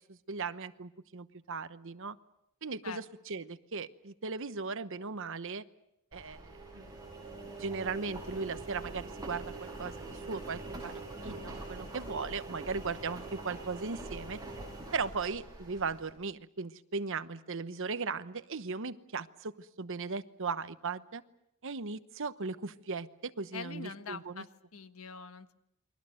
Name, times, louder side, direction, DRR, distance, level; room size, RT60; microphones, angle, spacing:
voice 1, 0.1-2.2 2.6-5.6 6.1-6.9 7.6-9.9 10.3-10.9 11.2-14.4 14.9-21.2 21.6-24.4, right 4 dB, 65° right, 12 dB, 1.0 m, -37 dB
Engine, 6.1-16.1, right 2 dB, 20° right, 7.9 m, -44 dB
voice 2, 23.5-25.5, left 5 dB, 85° left, 9 dB, 1.4 m, -44 dB
29.5 x 23.0 x 6.5 m, 0.80 s
head